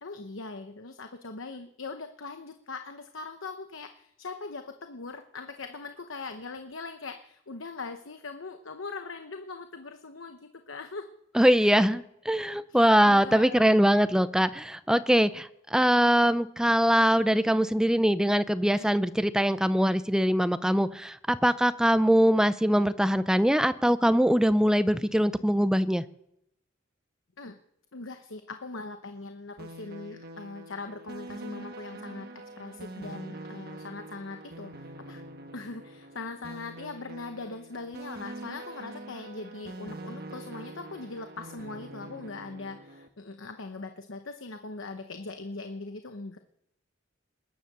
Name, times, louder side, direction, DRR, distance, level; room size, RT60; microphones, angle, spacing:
voice 1, 0.0-10.4 10.7-11.1 11.6-11.8 12.7-13.8 18.7-19.0 27.4-27.6 27.9-35.2 35.5-46.4, left 3 dB, 75° left, 7 dB, 1.0 m, -41 dB
voice 2, 11.3-26.0, equal, 5° right, 13 dB, 0.5 m, -22 dB
sound 1, 29.6-43.1, right 1 dB, 50° right, 1.3 m, -44 dB
20.0 x 10.5 x 6.7 m, 0.80 s
head